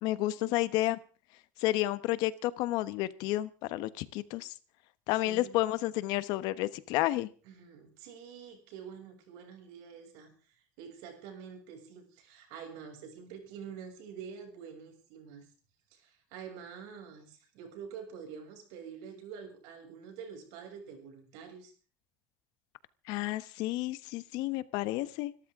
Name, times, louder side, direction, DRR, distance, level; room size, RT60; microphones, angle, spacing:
voice 1, 0.0-1.0 1.6-4.5 5.1-7.3 23.1-25.3, left 16 dB, 65° left, 15 dB, 1.1 m, -31 dB
voice 2, 5.1-5.6 7.5-10.3 10.8-15.5 15.9-21.7, right 7 dB, 75° right, 3 dB, 6.8 m, -47 dB
25.5 x 13.0 x 3.7 m, 0.37 s
cardioid pair, 170°, 8 cm